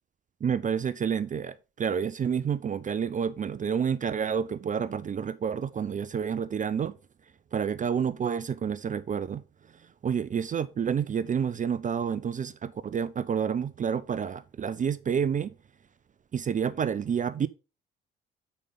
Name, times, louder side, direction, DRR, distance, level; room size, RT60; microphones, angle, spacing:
voice 1, 0.4-6.9 7.5-9.4 10.0-15.5 16.3-17.5, right 7 dB, 25° right, 0.5 m, -29 dB
8.4 x 5.4 x 5.4 m
figure-of-eight pair, 50°, 29 cm